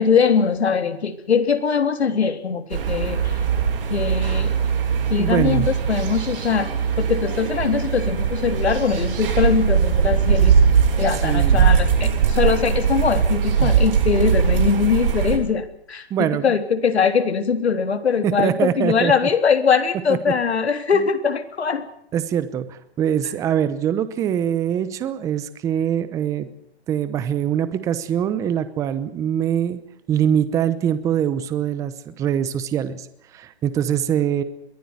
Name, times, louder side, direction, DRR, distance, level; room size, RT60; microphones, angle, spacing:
voice 1, 0.0-3.4 3.9-4.5 5.1-6.7 7.0-10.6 11.0-21.8, left 6 dB, 85° left, 8 dB, 3.5 m, -21 dB
sound 1, 2.7-15.4, right 7 dB, 60° right, 7.6 m, -20 dB
voice 2, 5.2-5.7 11.2-11.7 13.6-13.7 16.1-16.5 18.2-19.1 22.1-26.5 26.9-29.8 30.1-33.1 33.3-34.4, right 9 dB, 10° right, 13 dB, 0.8 m, -23 dB
22.5 x 15.5 x 9.6 m, 0.71 s
hypercardioid pair, 155°, 32 cm